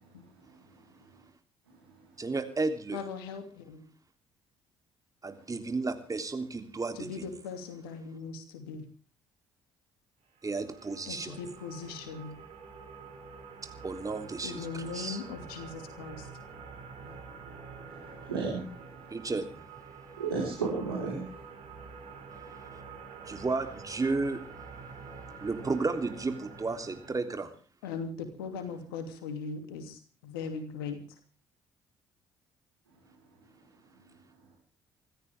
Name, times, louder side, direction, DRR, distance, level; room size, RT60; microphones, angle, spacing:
voice 1, 2.2-3.0 5.2-7.2 10.4-11.4 13.8-15.2 19.1-19.6 23.2-24.4 25.4-27.5, right 3 dB, 30° right, 6 dB, 3.4 m, -33 dB
voice 2, 2.9-3.8 7.0-8.9 11.1-12.4 14.4-16.3 27.8-31.2, left 5 dB, 80° left, 7 dB, 2.9 m, -39 dB
sound 1, 10.4-27.2, right 5 dB, 65° right, 6.9 m, -47 dB
voice 3, 18.2-18.6 20.2-21.2, right 4 dB, 90° right, -4 dB, 4.9 m, -32 dB
26.5 x 13.5 x 3.6 m, 0.39 s
hypercardioid pair, 45°, 12 cm